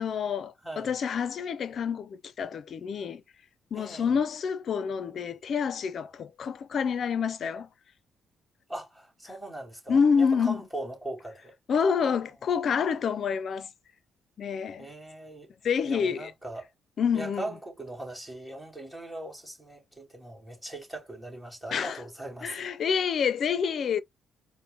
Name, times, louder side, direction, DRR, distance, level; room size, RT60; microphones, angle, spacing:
voice 1, 0.0-3.2 3.7-7.7 9.9-10.6 11.7-13.7 14.4-14.9 15.6-16.3 17.0-17.5 21.7-22.0 22.4-24.0, left 6 dB, 55° left, 0.4 m, -28 dB
voice 2, 3.7-4.2 8.7-11.5 12.0-12.3 14.8-15.5 15.8-16.7 17.1-22.6, right 1 dB, ahead, 2.7 m, -40 dB
4.4 x 2.1 x 3.8 m
cardioid pair, 90°, 0 cm